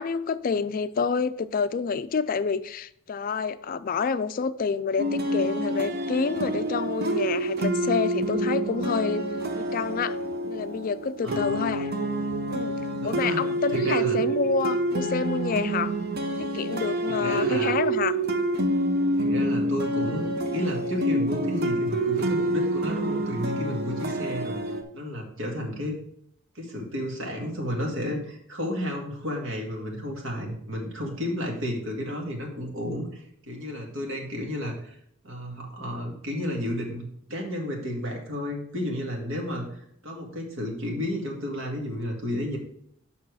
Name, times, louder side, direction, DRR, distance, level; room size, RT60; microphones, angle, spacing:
voice 1, 0.0-9.2 9.6-10.2 10.5-11.9 12.5-12.8 13.0-15.9 16.4-18.1, left 5 dB, 45° left, 0.4 m, -28 dB
sound 1, 5.0-24.8, right 1 dB, 50° right, 0.8 m, -27 dB
voice 2, 11.2-11.7 13.0-13.5 13.7-14.2 17.1-17.8 19.2-24.6 24.9-26.0 26.6-35.0 35.2-42.6, equal, 80° right, 2.1 m, -32 dB
7.1 x 5.6 x 4.8 m
head